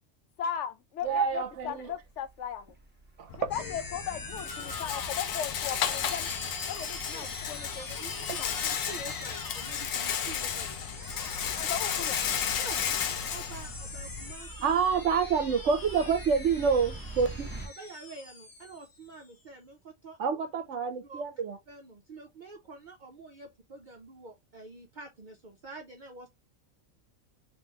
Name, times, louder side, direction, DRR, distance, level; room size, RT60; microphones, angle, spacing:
voice 1, 0.4-2.7 3.4-6.3 6.7-8.5 11.6-12.2, left 9 dB, 70° left, 0.9 m, -37 dB
sound 1, 1.0-17.7, right 2 dB, 10° right, 0.7 m, -48 dB
voice 2, 1.0-1.9 3.2-3.5 14.6-17.5 20.2-21.6, right 6 dB, 65° right, 1.0 m, -27 dB
Rattle, 3.3-14.3, left 8 dB, 90° left, 1.1 m, -33 dB
sound 2, 3.5-19.3, left 3 dB, 35° left, 0.3 m, -43 dB
voice 3, 8.0-10.8 12.5-12.9 13.3-14.8 16.0-16.1 17.6-20.2 21.0-21.2 21.7-26.3, right 3 dB, 50° right, 0.6 m, -47 dB
3.1 x 2.9 x 3.3 m
omnidirectional pair, 1.4 m